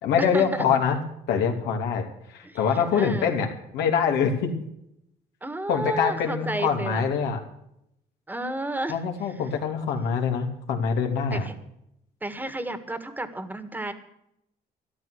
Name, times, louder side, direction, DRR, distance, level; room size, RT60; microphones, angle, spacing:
voice 1, 0.0-1.0 1.3-3.5 3.7-4.6 5.7-7.4 8.9-11.5, left 6 dB, 80° left, 2 dB, 3.0 m, -24 dB
voice 2, 2.9-3.3 5.4-7.0 8.3-9.0 11.3-11.5 12.2-13.9, right 1 dB, 10° right, 10 dB, 1.7 m, -31 dB
13.5 x 12.0 x 6.4 m, 0.78 s
cardioid pair, 110°, 17 cm